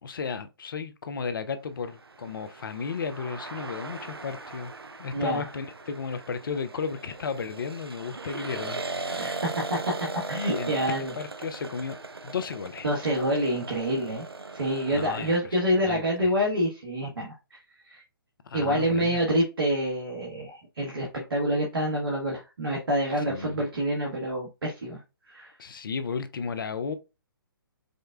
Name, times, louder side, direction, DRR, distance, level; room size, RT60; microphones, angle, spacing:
voice 1, 0.0-4.7 5.0-9.1 10.6-12.0 12.2-12.9 14.9-15.3 15.8-16.3 18.4-19.2 23.1-23.7 25.6-26.9, left 5 dB, 60° left, 0.5 m, -34 dB
sound 1, 1.9-15.4, right 3 dB, 90° right, 0.4 m, -39 dB
voice 2, 5.1-5.4 9.1-9.9 10.3-11.1 12.8-14.2 14.5-17.6 17.8-18.0 18.5-25.0 25.3-25.5, equal, 70° right, 1.3 m, -27 dB
5.1 x 2.1 x 2.3 m
figure-of-eight pair, 130°, 12 cm